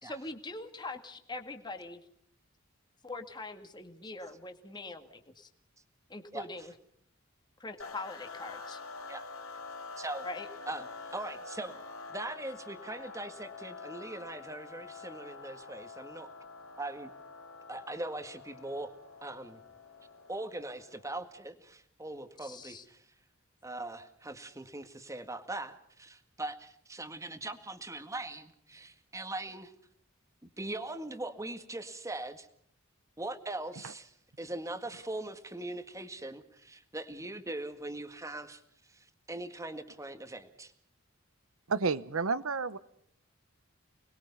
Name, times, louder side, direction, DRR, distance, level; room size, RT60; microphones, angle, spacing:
voice 1, 0.0-2.0 3.0-5.5 6.1-6.7 7.6-8.8 10.2-10.5 22.4-22.8, left 2 dB, 20° left, 5 dB, 2.0 m, -43 dB
sound 1, 7.8-21.2, left 4 dB, 75° left, 3.7 m, -47 dB
voice 2, 10.0-10.3 10.7-11.8 12.1-16.3 16.8-17.1 17.7-18.9 19.2-19.6 20.3-23.0 23.6-29.7 30.4-32.5 33.2-34.1 34.4-38.6 38.9-40.7, right 2 dB, 15° right, 8 dB, 1.8 m, -41 dB
voice 3, 41.7-42.8, right 4 dB, 80° right, 16 dB, 0.9 m, -30 dB
29.5 x 21.0 x 5.5 m, 0.65 s
head